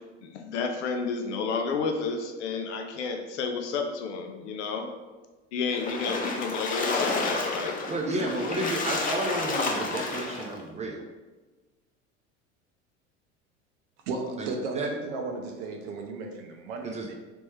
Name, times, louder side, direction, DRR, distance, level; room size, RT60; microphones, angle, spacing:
voice 1, 0.2-4.9 5.5-7.8 8.4-8.5 9.9-10.0, left 5 dB, 70° left, 4 dB, 0.6 m, -31 dB
Splash splatter, 5.7-10.5, left 3 dB, 25° left, 0.6 m, -30 dB
voice 2, 7.8-11.0 14.4-14.9 16.9-17.1, right 2 dB, 20° right, 1 dB, 0.5 m, -31 dB
voice 3, 14.1-17.1, right 3 dB, 60° right, 3 dB, 0.6 m, -34 dB
3.4 x 3.0 x 3.2 m, 1.2 s
figure-of-eight pair, 75°, 36 cm